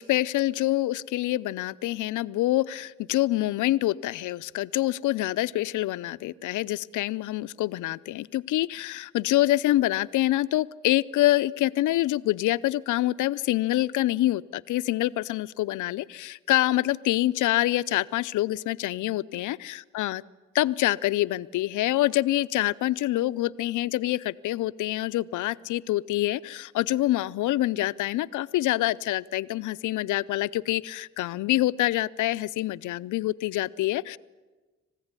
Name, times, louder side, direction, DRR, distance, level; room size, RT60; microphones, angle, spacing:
voice 1, 0.0-20.2 20.5-34.2, left 16 dB, 80° left, 14 dB, 0.7 m, -26 dB
27.0 x 15.5 x 9.7 m, 1.3 s
cardioid pair, 90°, 30 cm